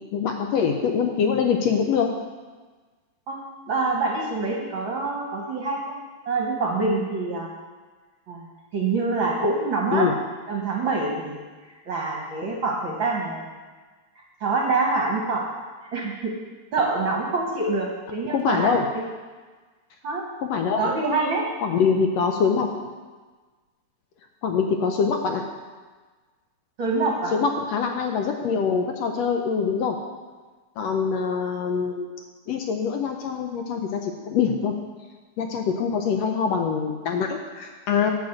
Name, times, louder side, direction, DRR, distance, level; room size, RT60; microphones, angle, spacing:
voice 1, 0.1-2.1 9.9-10.2 18.3-18.9 20.4-20.9 21.6-22.9 24.4-25.4 27.3-30.0 30.8-32.1 32.5-34.7 35.4-38.1, left 6 dB, 75° left, 3 dB, 1.7 m, -24 dB
voice 2, 3.3-6.0 6.3-7.5 8.3-8.5 8.7-10.1 10.5-13.5 14.4-15.4 15.9-16.3 16.7-19.0 20.0-20.2 20.8-21.4 26.8-27.3, right 3 dB, 55° right, -1 dB, 1.4 m, -26 dB
10.5 x 5.2 x 7.8 m, 1.4 s
omnidirectional pair, 3.4 m